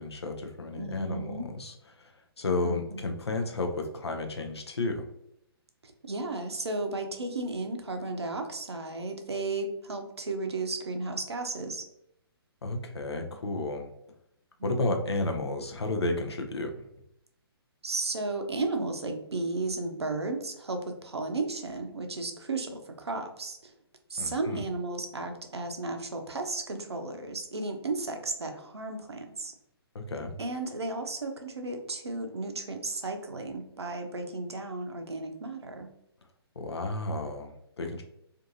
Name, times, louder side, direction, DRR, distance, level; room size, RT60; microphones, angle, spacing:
voice 1, 0.0-5.1 12.6-13.9 14.6-16.7 24.2-24.6 29.9-30.4 36.6-38.0, left 2 dB, 80° left, 4 dB, 0.6 m, -32 dB
voice 2, 0.7-1.5 2.6-3.0 5.8-11.8 14.6-15.0 17.8-23.7 24.1-29.5 30.4-35.9, right 3 dB, 85° right, 5 dB, 0.5 m, -34 dB
2.6 x 2.5 x 2.5 m, 0.77 s
figure-of-eight pair, 130°, 13 cm